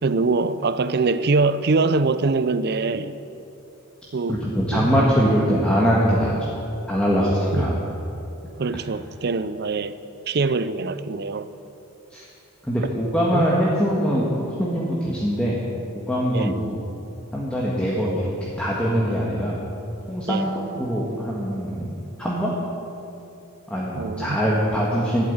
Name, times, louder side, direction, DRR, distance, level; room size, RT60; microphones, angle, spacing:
voice 1, 0.0-3.2 4.1-4.4 4.7-5.1 7.5-7.7 8.6-10.0 10.3-11.5 13.3-13.5 16.3-16.5 20.3-20.4 23.9-24.4, right 3 dB, 45° right, 0.5 m, -23 dB
voice 2, 4.3-7.7 12.1-12.2 12.6-15.6 15.9-16.8 17.3-19.6 20.1-21.9 22.2-22.5 23.7-25.2, equal, 5° left, 1.5 m, -22 dB
12.0 x 8.6 x 9.6 m
head